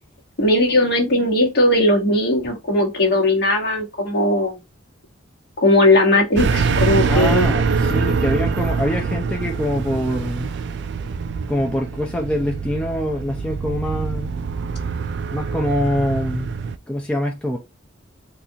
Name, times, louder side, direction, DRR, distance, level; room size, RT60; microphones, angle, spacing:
voice 1, 0.4-4.5 5.6-7.5, left 1 dB, 55° left, 1.2 m, -18 dB
sound 1, 6.4-16.8, right 5 dB, 60° right, 0.3 m, -24 dB
voice 2, 7.1-10.5 11.5-14.3 15.3-16.5 16.9-17.6, left 1 dB, 5° left, 0.4 m, -24 dB
4.2 x 2.4 x 2.7 m
head